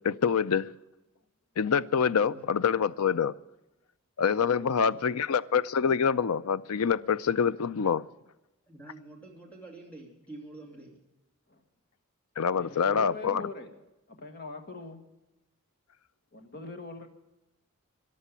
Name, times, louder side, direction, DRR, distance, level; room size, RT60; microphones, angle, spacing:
voice 1, 0.0-0.7 1.6-3.3 4.2-8.0 12.4-13.5, left 6 dB, 85° left, 0.5 m, -26 dB
voice 2, 2.0-2.7 4.4-5.3 8.7-11.0, right 2 dB, 5° left, 3.0 m, -48 dB
voice 3, 12.5-13.7 14.1-15.0 16.3-17.1, left 3 dB, 45° left, 1.6 m, -42 dB
14.0 x 10.5 x 8.2 m
head